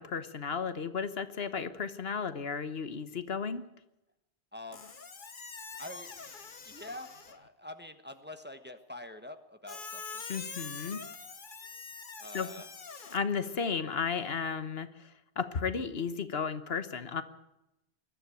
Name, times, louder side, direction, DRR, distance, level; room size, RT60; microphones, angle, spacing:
voice 1, 0.0-3.6 10.3-11.0 12.3-12.5 13.1-15.1 15.4-17.2, left 6 dB, 70° left, 12 dB, 1.3 m, -34 dB
voice 2, 4.5-4.9 5.8-6.2 6.6-10.2 12.2-12.7, left 1 dB, 10° right, 8 dB, 1.2 m, -46 dB
Squeak, 4.7-7.5 9.7-13.2, left 5 dB, 50° left, 1.4 m, -44 dB
21.5 x 13.0 x 9.2 m, 0.92 s
omnidirectional pair, 1.1 m